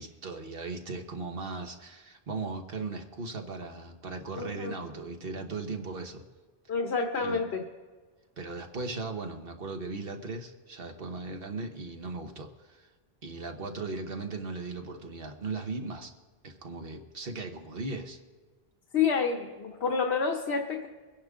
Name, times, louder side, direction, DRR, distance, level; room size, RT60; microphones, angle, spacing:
voice 1, 0.0-6.2 7.2-7.4 8.4-12.9 13.2-16.1 16.4-18.2, right 3 dB, 65° right, 5 dB, 1.5 m, -38 dB
voice 2, 4.3-4.7 6.7-7.6 18.9-20.9, left 5 dB, 90° left, 3 dB, 1.3 m, -28 dB
23.5 x 10.5 x 3.7 m, 1.4 s
omnidirectional pair, 1.0 m